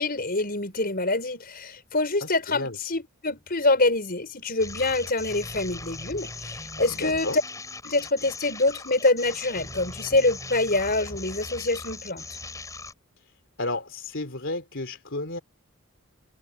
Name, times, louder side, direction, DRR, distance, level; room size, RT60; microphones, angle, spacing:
voice 1, 0.0-7.3 7.8-12.3, left 2 dB, 45° left, 5.7 m, -25 dB
voice 2, 2.2-2.8 6.9-7.4 13.6-15.4, left 2 dB, 60° left, 3.4 m, -32 dB
sound 1, 4.6-12.9, left 3 dB, 15° left, 5.3 m, -39 dB
head